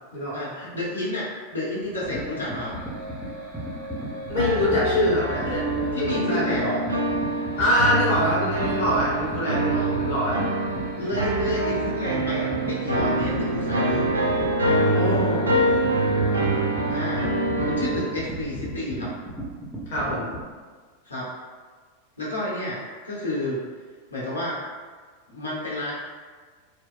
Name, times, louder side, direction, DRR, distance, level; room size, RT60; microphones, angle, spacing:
voice 1, 0.3-2.7 5.9-6.8 9.7-10.0 11.0-14.0 16.9-17.3 17.7-19.1 21.0-21.3 22.2-23.6 24.1-24.6 25.3-25.9, left 1 dB, 80° left, -7 dB, 1.0 m, -30 dB
sound 1, 1.8-20.5, right 1 dB, ahead, 0.8 m, -35 dB
sound 2, 1.9-17.5, equal, 40° right, 0.8 m, -42 dB
voice 2, 4.3-6.8 7.6-10.4 14.8-15.5 19.9-20.3, left 1 dB, 55° left, -6 dB, 0.8 m, -24 dB
sound 3, 4.4-18.1, right 1 dB, 75° right, 0.4 m, -25 dB
4.3 x 2.1 x 2.2 m, 1.5 s
figure-of-eight pair, 90°, 0 cm